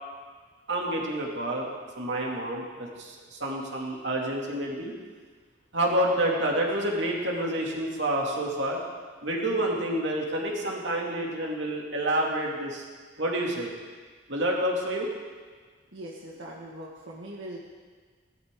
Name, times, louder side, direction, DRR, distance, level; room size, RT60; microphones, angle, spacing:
voice 1, 0.7-1.7 2.0-4.9 5.7-8.8 9.2-12.8 13.2-13.7 14.3-15.1, right 1 dB, 65° right, -2 dB, 2.6 m, -28 dB
voice 2, 15.9-17.6, right 1 dB, 85° right, -4 dB, 1.8 m, -41 dB
19.5 x 13.0 x 3.8 m, 1.5 s
head